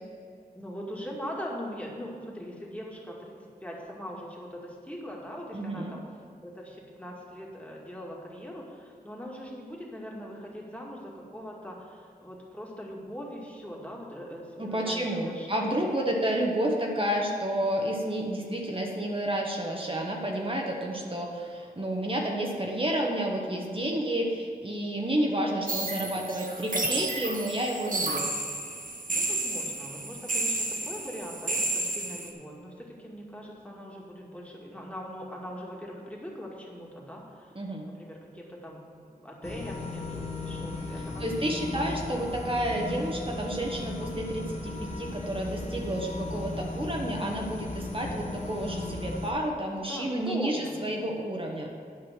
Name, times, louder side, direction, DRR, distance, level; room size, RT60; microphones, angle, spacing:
voice 1, 0.5-3.3 3.6-6.1 6.4-16.1 25.0-25.4 29.1-37.5 37.8-38.9 39.2-41.7 42.0-42.1 49.9-50.8, equal, 10° left, -3 dB, 2.2 m, -41 dB
voice 2, 5.5-5.9 14.6-28.3 37.5-37.8 41.2-51.7, right 1 dB, 35° right, -1 dB, 1.3 m, -30 dB
sound 1, 25.7-32.3, right 2 dB, 55° right, 1.2 m, -31 dB
sound 2, 39.4-49.3, left 2 dB, 45° left, 1.1 m, -36 dB
9.9 x 5.5 x 7.4 m, 2.3 s
wide cardioid pair, 55°, 16 cm